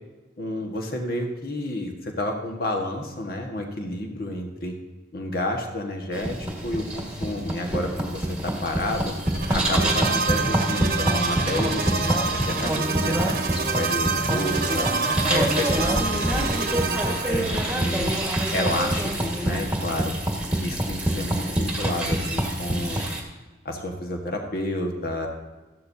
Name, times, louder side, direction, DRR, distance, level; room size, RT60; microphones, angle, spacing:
voice 1, 0.4-4.7 5.1-9.1 9.5-14.8 15.3-18.2 18.5-20.1 20.6-23.0 23.6-25.3, left 1 dB, 55° left, 2 dB, 1.5 m, -30 dB
sound 1, 6.1-23.2, right 1 dB, 5° right, 1.7 m, -26 dB
sound 2, 9.2-17.7, right 4 dB, 50° right, 1.0 m, -27 dB
14.0 x 12.0 x 2.8 m, 1.2 s
head